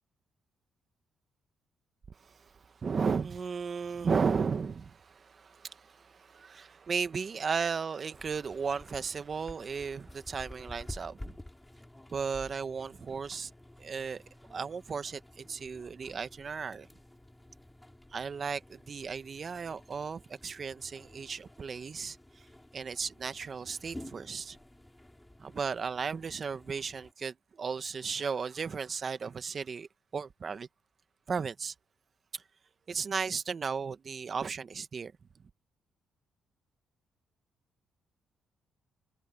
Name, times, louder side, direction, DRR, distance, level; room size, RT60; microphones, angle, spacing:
voice 1, 2.1-11.4 12.1-13.5 13.8-14.2 14.5-16.9 18.1-22.5 22.7-24.6 25.4-30.7 31.3-31.7 32.3-32.4 32.9-35.1, right 5 dB, 40° right, 1.4 m, -35 dB
sound 1, 8.1-27.1, left 1 dB, 10° left, 7.2 m, -51 dB
cardioid pair, 90°, 0 cm